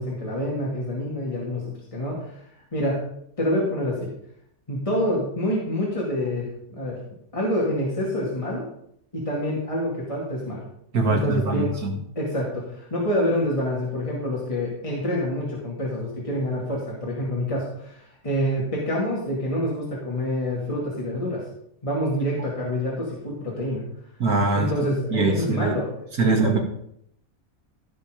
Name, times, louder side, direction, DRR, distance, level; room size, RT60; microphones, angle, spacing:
voice 1, 0.0-1.6 1.9-2.4 2.7-3.0 3.4-4.1 4.7-7.0 7.3-8.6 9.1-10.6 11.1-11.8 12.2-21.4 21.8-23.8 24.5-25.9 26.2-26.5, equal, 20° left, -4 dB, 2.5 m, -27 dB
voice 2, 10.9-11.9 24.2-24.7 25.1-25.7 26.2-26.6, right 3 dB, 85° right, 2 dB, 2.6 m, -22 dB
15.5 x 5.7 x 5.1 m, 0.72 s
omnidirectional pair, 1.5 m